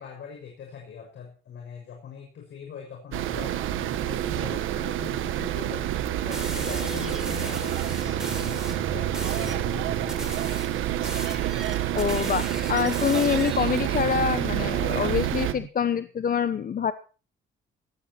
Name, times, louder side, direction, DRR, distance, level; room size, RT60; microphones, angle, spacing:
voice 1, 0.0-10.6, left 7 dB, 70° left, 1 dB, 6.3 m, -41 dB
sound 1, 3.1-15.5, right 12 dB, 85° right, 1.4 m, -28 dB
sound 2, 5.9-15.7, right 9 dB, 70° right, 2.4 m, -40 dB
sound 3, 6.3-8.8 9.1-9.6 10.1-13.8, right 1 dB, 5° right, 5.0 m, -38 dB
voice 2, 11.9-16.9, left 7 dB, 45° left, 12 dB, 1.0 m, -26 dB
18.5 x 12.5 x 4.5 m, 0.38 s
cardioid pair, 90°, 20 cm